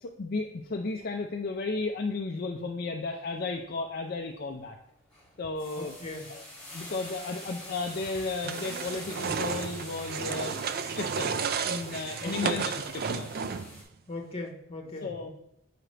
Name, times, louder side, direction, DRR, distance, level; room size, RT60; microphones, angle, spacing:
voice 1, 0.0-4.8 5.4-5.9 6.3-6.4 6.7-11.3 11.6-13.3 15.0-15.3, left 3 dB, 50° left, 2 dB, 0.4 m, -34 dB
sound 1, 4.1-4.4 4.8-13.8, left 1 dB, 5° left, 2.6 m, -45 dB
voice 2, 5.8-6.3 12.2-12.6 14.1-15.3, left 2 dB, 30° left, 2 dB, 1.1 m, -38 dB
sound 2, 8.4-13.8, right 6 dB, 50° right, 0.4 m, -33 dB
7.7 x 4.9 x 3.2 m, 0.78 s
head